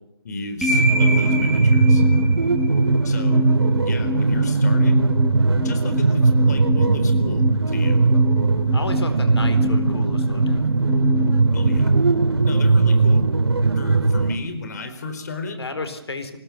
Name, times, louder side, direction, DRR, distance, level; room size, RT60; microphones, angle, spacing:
voice 1, 0.2-2.0 3.0-3.4 3.8-5.0 5.6-8.0 11.5-11.9 12.5-13.3 13.7-15.6, left 2 dB, 45° left, 8 dB, 4.1 m, -33 dB
sound 1, 0.6-12.7, left 3 dB, ahead, 2.6 m, -28 dB
sound 2, 0.7-14.3, right 3 dB, 90° right, 3.7 m, -18 dB
voice 2, 8.7-10.7 15.6-16.4, left 3 dB, 90° left, 10 dB, 4.1 m, -32 dB
24.5 x 20.0 x 7.2 m, 0.83 s
hypercardioid pair, 165°, 13 cm